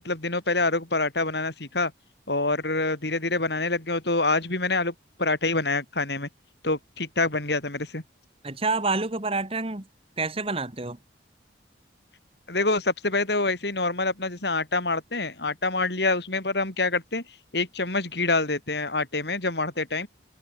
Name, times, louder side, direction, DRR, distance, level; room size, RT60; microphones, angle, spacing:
voice 1, 0.0-1.9 2.3-4.9 5.2-6.3 6.6-8.0 12.5-17.2 17.5-20.1, left 3 dB, 60° left, 4.0 m, -26 dB
voice 2, 8.4-9.9 10.2-11.0, right 3 dB, 30° right, 2.0 m, -28 dB
head